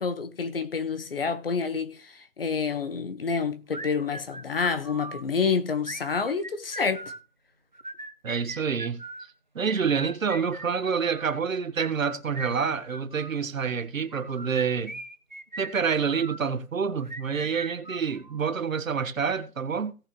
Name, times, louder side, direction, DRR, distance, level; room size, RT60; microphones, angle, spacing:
voice 1, 0.0-7.0, left 5 dB, 40° left, 1.3 m, -28 dB
sound 1, 3.7-5.2 5.8-7.2 7.7-9.3 9.8-11.4 11.9-13.4 14.1-16.4 17.0-18.5, right 2 dB, 35° right, 0.5 m, -40 dB
voice 2, 8.2-9.0 9.5-14.9 15.6-20.0, right 6 dB, 60° right, 1.4 m, -27 dB
17.5 x 6.1 x 3.1 m
hypercardioid pair, 170°, 45 cm